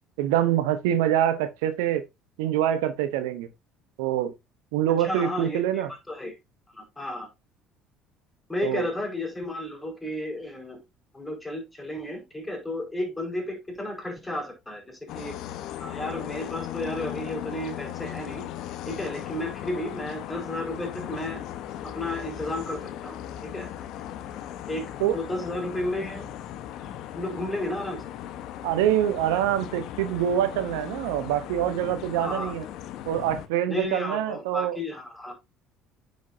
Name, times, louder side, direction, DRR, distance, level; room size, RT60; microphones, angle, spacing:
voice 1, 0.2-2.0 2.4-3.5 4.0-4.3 4.7-5.9 8.6-8.8 25.0-25.2 28.6-32.6 33.1-34.8, right 11 dB, 75° right, 0.9 m, -25 dB
voice 2, 5.0-6.3 6.7-7.3 8.5-10.8 11.1-15.3 15.8-18.5 18.8-21.4 21.9-23.7 24.7-24.8 25.1-26.3 27.1-28.0 32.2-32.5 33.7-35.3, left 1 dB, 15° left, 5.0 m, -33 dB
sound 1, 15.1-33.5, left 11 dB, 65° left, 1.1 m, -37 dB
9.6 x 6.3 x 2.7 m
hypercardioid pair, 65°, 0 cm